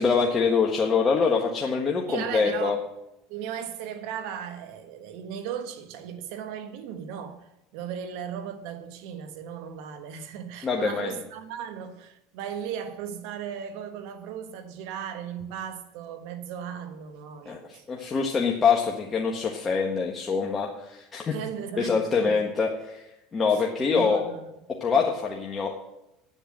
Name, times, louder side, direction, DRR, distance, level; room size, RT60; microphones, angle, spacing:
voice 1, 0.0-2.8 10.6-11.1 17.4-21.3 21.8-23.1 23.3-24.2 24.8-25.7, left 5 dB, 30° left, 1.5 m, -24 dB
voice 2, 2.1-2.8 3.3-17.8 21.3-22.4 23.5-23.6 23.9-24.5, right 8 dB, 70° right, 1.3 m, -36 dB
9.2 x 8.1 x 7.6 m
hypercardioid pair, 90°, 0 cm